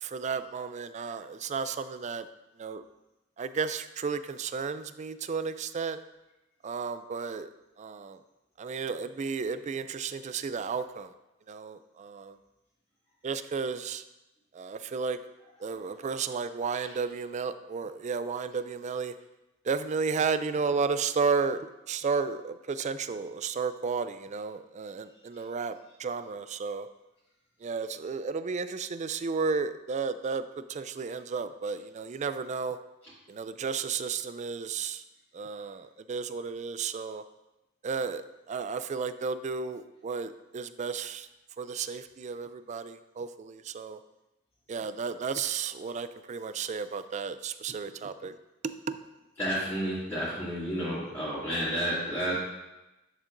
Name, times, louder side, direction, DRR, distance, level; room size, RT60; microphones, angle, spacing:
voice 1, 0.0-2.3 2.6-2.8 3.4-6.0 6.6-7.5 7.8-8.2 8.6-11.1 11.5-12.4 13.2-14.0 14.5-15.2 15.6-19.1 19.6-21.6 21.9-26.9 27.6-32.8 33.3-35.0 35.3-37.2 37.8-41.3 41.6-44.0 44.7-48.3 48.6-49.0, right 5 dB, 35° right, 12 dB, 0.3 m, -33 dB
voice 2, 49.4-52.4, equal, 10° left, -13 dB, 2.3 m, -31 dB
10.0 x 7.3 x 2.6 m, 0.99 s
head